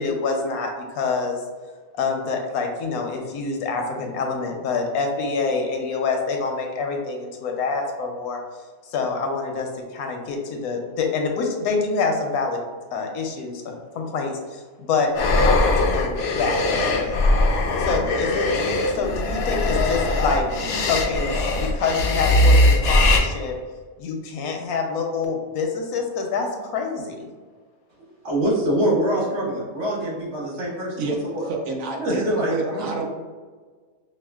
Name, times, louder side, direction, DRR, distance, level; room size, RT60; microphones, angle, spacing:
voice 1, 0.0-1.4 1.9-8.4 8.8-12.6 12.9-15.1 15.5-17.2 17.8-20.5 20.9-21.3 21.6-23.5 24.0-27.3, left 4 dB, 85° left, 2 dB, 1.1 m, -26 dB
sound 1, 15.1-23.2, left 2 dB, 70° left, 0.6 m, -20 dB
voice 2, 28.2-31.5 32.0-33.0, right 1 dB, 55° right, -5 dB, 1.3 m, -24 dB
voice 3, 31.4-33.0, right 3 dB, 70° right, 1 dB, 1.0 m, -28 dB
5.5 x 2.4 x 2.3 m, 1.5 s
omnidirectional pair, 1.5 m